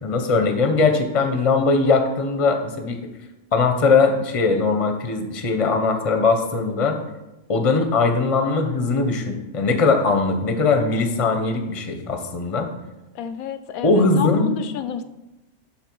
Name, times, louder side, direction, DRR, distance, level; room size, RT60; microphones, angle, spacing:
voice 1, 0.0-3.0 3.5-7.0 7.5-12.7 13.8-14.5, left 4 dB, 30° left, 6 dB, 0.8 m, -20 dB
voice 2, 13.1-15.0, left 8 dB, 80° left, 10 dB, 1.0 m, -30 dB
11.5 x 4.5 x 4.6 m, 0.99 s
omnidirectional pair, 1.5 m